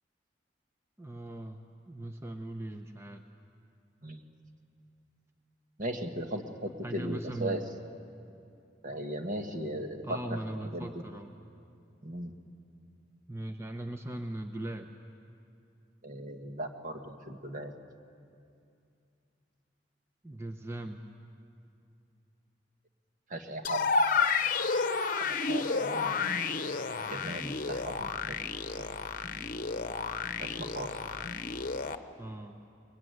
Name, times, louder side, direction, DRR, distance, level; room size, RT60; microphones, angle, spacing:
voice 1, 1.0-3.2 6.8-7.6 10.0-11.3 13.3-14.9 20.2-21.0 32.2-32.6, right 1 dB, 15° right, 5 dB, 0.8 m, -39 dB
voice 2, 5.8-7.6 8.8-10.2 10.7-10.9 12.0-12.3 16.0-17.7 23.3-23.9 25.5-26.3 27.1-28.4 28.8-28.9 30.4-30.9, right 1 dB, 45° right, 5 dB, 1.7 m, -37 dB
sound 1, 23.6-32.0, left 4 dB, 50° left, 0.9 m, -31 dB
24.0 x 21.5 x 9.4 m, 2.5 s
head